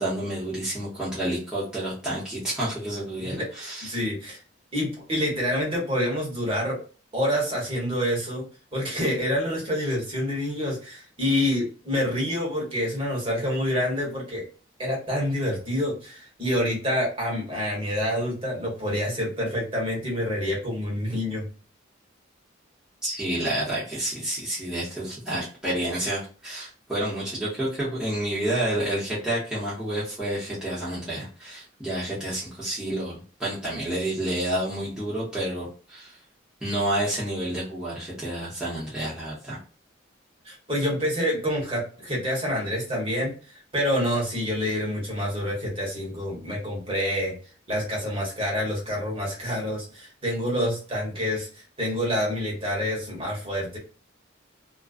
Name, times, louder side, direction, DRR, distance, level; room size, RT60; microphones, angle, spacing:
voice 1, 0.0-3.9 23.0-36.2 36.6-39.6, right 1 dB, 5° right, -10 dB, 0.8 m, -29 dB
voice 2, 3.8-4.4 4.7-6.8 7.1-8.4 8.7-14.4 14.8-21.5 40.4-47.3 47.7-53.8, equal, 30° right, -3 dB, 1.1 m, -27 dB
2.4 x 2.1 x 2.4 m, 0.38 s
head